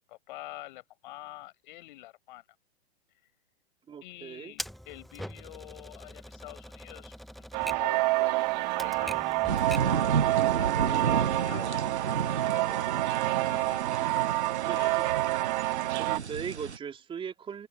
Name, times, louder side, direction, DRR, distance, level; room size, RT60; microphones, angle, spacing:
voice 1, 0.0-2.4 4.0-14.4 14.7-15.1, left 17 dB, 50° left, 5.9 m, -47 dB
voice 2, 3.9-4.5 14.7-15.0 15.9-17.7, right 7 dB, 15° right, 3.4 m, -39 dB
Typewriter, 4.6-10.0, equal, ahead, 1.2 m, -43 dB
sound 1, 7.5-16.2, right 22 dB, 40° right, 2.8 m, -28 dB
sound 2, 9.5-16.8, right 6 dB, 85° right, 1.0 m, -32 dB
figure-of-eight pair, 115°, 33 cm